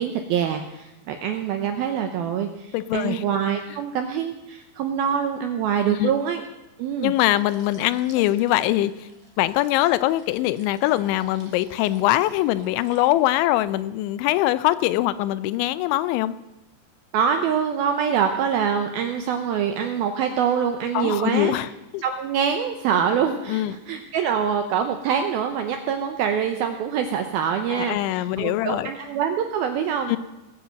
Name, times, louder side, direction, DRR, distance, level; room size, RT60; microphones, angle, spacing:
voice 1, 0.0-6.4 6.8-7.1 17.1-21.6 22.0-30.1, right 7 dB, 75° right, 6 dB, 2.2 m, -25 dB
voice 2, 2.7-3.2 6.0-6.1 7.0-9.1 9.4-16.4 20.9-22.0 23.5-23.7 27.7-28.9 30.1-30.2, left 15 dB, 85° left, 15 dB, 3.0 m, -22 dB
sound 1, 7.3-13.5, right 3 dB, 30° right, 3.1 m, -48 dB
19.0 x 9.8 x 7.6 m, 0.97 s
omnidirectional pair, 5.3 m